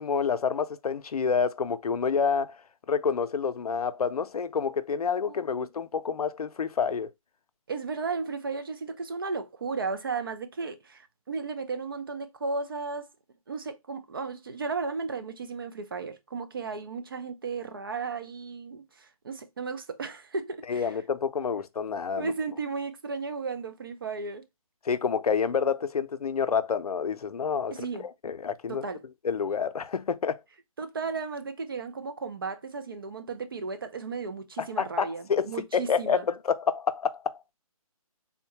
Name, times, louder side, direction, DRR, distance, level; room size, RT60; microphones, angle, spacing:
voice 1, 0.0-2.6 2.9-7.1 20.7-22.3 24.8-27.9 28.2-28.8 29.2-30.4 34.6-37.4, left 6 dB, 85° left, 0.5 m, -28 dB
voice 2, 5.3-5.7 7.7-13.1 13.5-20.9 22.2-24.4 27.7-28.1 28.7-29.0 30.8-36.2, right 4 dB, 40° right, 0.4 m, -34 dB
3.7 x 2.1 x 2.8 m
hypercardioid pair, 165°, 19 cm